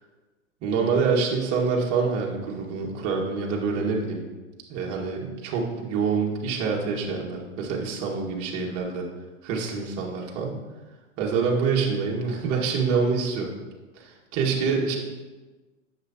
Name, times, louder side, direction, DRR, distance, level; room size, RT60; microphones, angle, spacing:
voice 1, 0.6-4.2 4.7-9.0 9.4-10.6 11.2-13.5 13.9-15.0, right 5 dB, 35° right, -1 dB, 2.0 m, -26 dB
11.5 x 7.6 x 2.9 m, 1.2 s
hypercardioid pair, 115°, 40 cm